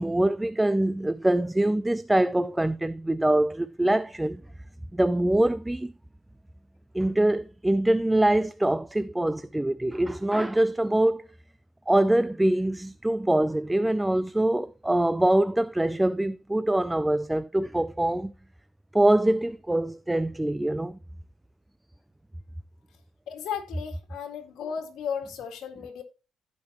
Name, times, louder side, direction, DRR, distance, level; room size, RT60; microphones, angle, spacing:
voice 1, 0.0-4.4 4.9-5.9 6.9-11.2 11.9-18.3 18.9-21.0, right 1 dB, 10° right, 0.3 m, -24 dB
voice 2, 23.3-26.0, left 7 dB, 80° left, 1.9 m, -35 dB
15.5 x 5.3 x 3.0 m
cardioid pair, 90°, 0 cm